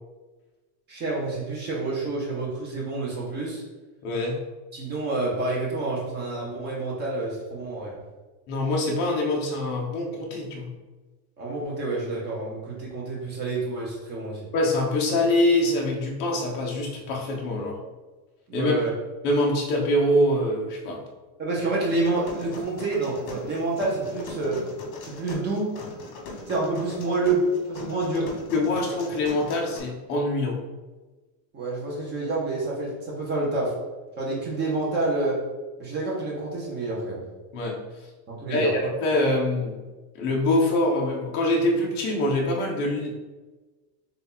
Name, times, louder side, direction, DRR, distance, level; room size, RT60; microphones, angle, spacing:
voice 1, 0.9-3.6 4.7-8.0 11.4-14.5 18.5-18.9 21.4-24.6 25.0-25.7 26.5-28.3 31.5-33.7 34.2-35.4 35.8-37.3 38.3-38.7, right 2 dB, 20° right, -4 dB, 0.9 m, -28 dB
voice 2, 4.0-4.4 8.5-10.7 14.5-17.8 18.5-18.7 19.2-21.0 28.1-28.2 28.5-30.6 37.5-37.8 38.5-39.8 40.1-43.1, left 1 dB, 25° left, -1 dB, 0.3 m, -24 dB
sound 1, 21.8-29.8, left 2 dB, 60° left, 1.2 m, -40 dB
3.5 x 2.8 x 3.8 m, 1.2 s
supercardioid pair, 170°, 47 cm